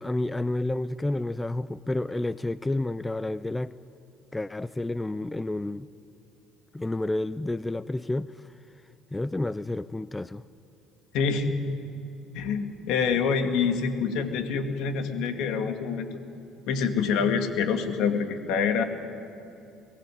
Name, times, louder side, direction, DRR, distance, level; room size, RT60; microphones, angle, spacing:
voice 1, 0.0-3.7 4.3-5.9 6.7-8.5 9.1-10.4, left 2 dB, 15° left, 16 dB, 0.6 m, -30 dB
voice 2, 11.1-11.5 12.3-16.1 16.7-18.8, left 6 dB, 70° left, 6 dB, 2.3 m, -26 dB
22.0 x 18.0 x 9.3 m, 2.9 s
hypercardioid pair, 65°, 0 cm